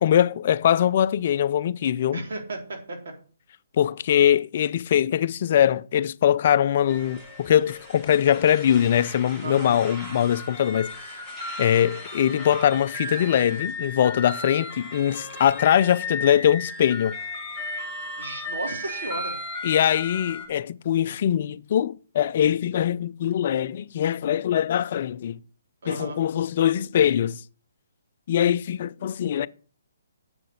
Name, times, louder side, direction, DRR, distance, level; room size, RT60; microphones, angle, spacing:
voice 1, 0.0-2.2 3.8-11.2 11.6-17.1 19.6-25.4 25.9-27.4 28.3-29.5, left 10 dB, 45° left, 0.5 m, -22 dB
voice 2, 2.1-3.0 9.4-9.8 18.2-19.4 25.8-26.2, right 2 dB, 65° right, 3.7 m, -34 dB
sound 1, 6.9-20.5, left 2 dB, 10° right, 3.1 m, -36 dB
7.7 x 6.8 x 6.5 m
hypercardioid pair, 150°, 0 cm